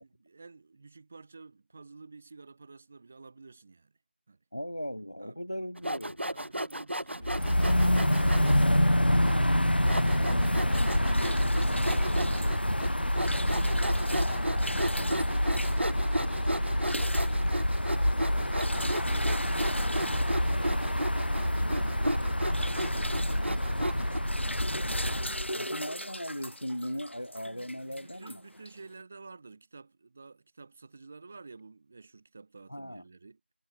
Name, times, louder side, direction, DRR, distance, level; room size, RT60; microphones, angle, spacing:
voice 1, 0.0-3.9 4.3-4.4 5.2-5.7 6.3-17.8 18.2-24.4 24.8-25.6 27.4-33.4, right 4 dB, 5° right, 2.9 m, -51 dB
voice 2, 4.5-6.2 25.5-28.4 32.7-33.0, equal, 25° left, 1.1 m, -38 dB
Sawing, 5.8-8.6 9.2-9.3 9.9-24.2, right 1 dB, 75° right, 1.8 m, -34 dB
sound 1, 7.2-25.5, left 1 dB, 55° left, 2.3 m, -27 dB
sound 2, 10.7-29.0, equal, 80° left, 3.5 m, -41 dB
figure-of-eight pair, 180°, 6 cm